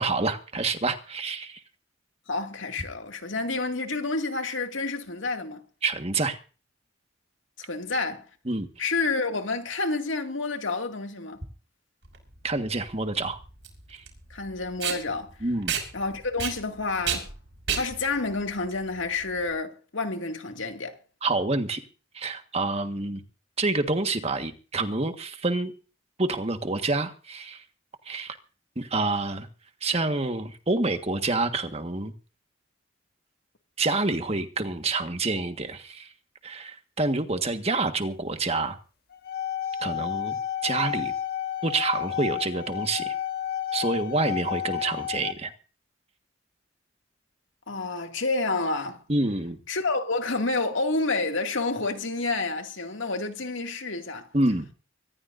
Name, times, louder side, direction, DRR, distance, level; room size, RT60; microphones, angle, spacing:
voice 1, 0.0-1.6 5.8-6.4 8.5-8.7 12.4-13.4 13.9-14.0 15.4-15.7 21.2-21.8 22.1-23.2 23.6-25.7 26.2-27.6 28.1-28.4 28.8-29.5 29.8-32.1 33.8-36.1 36.4-38.8 39.8-41.1 41.6-43.1 43.7-45.5 49.1-49.6 54.3-54.7, right 3 dB, 35° right, 1.6 m, -27 dB
voice 2, 2.3-5.6 7.6-8.3 8.8-11.4 14.3-15.3 15.9-17.3 17.7-21.0 47.7-49.0 49.7-54.3, left 3 dB, 80° left, 2.4 m, -29 dB
Packing tape duct tape, 12.0-19.5, right 7 dB, 70° right, 5.9 m, -33 dB
sound 1, 39.1-45.3, left 10 dB, 50° left, 1.6 m, -31 dB
25.0 x 14.5 x 2.6 m
head